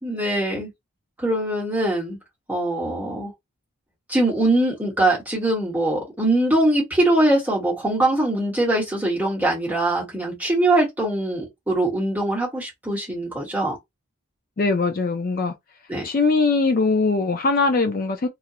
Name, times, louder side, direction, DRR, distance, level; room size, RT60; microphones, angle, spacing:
voice 1, 0.0-0.7 1.2-2.2 2.5-3.3 4.1-13.8 15.9-16.1, right 1 dB, 5° right, 1.0 m, -22 dB
voice 2, 14.6-15.5 16.0-18.3, left 3 dB, 40° left, 0.4 m, -21 dB
2.4 x 2.2 x 2.7 m
head